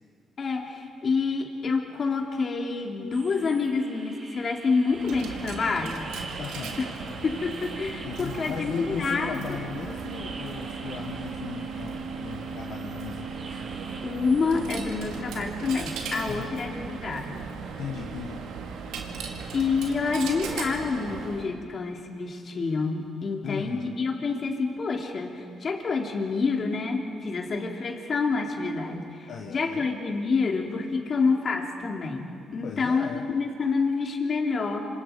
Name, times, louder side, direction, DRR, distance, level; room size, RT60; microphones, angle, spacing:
voice 1, 0.4-6.1 6.8-6.9 7.2-9.6 14.0-17.4 19.5-32.3 32.5-34.9, left 4 dB, 45° left, 2 dB, 3.1 m, -28 dB
sound 1, 3.1-14.8, right 3 dB, 50° right, 3.2 m, -46 dB
Coin (dropping), 4.9-21.5, right 5 dB, 90° right, 2.4 m, -37 dB
voice 2, 6.4-6.8 8.0-13.6 16.3-16.5 17.8-18.4 23.4-24.0 29.3-29.9 32.6-33.2, left 6 dB, 70° left, 2 dB, 1.5 m, -37 dB
27.5 x 25.5 x 5.3 m, 2.6 s
cardioid pair, 90°, 0 cm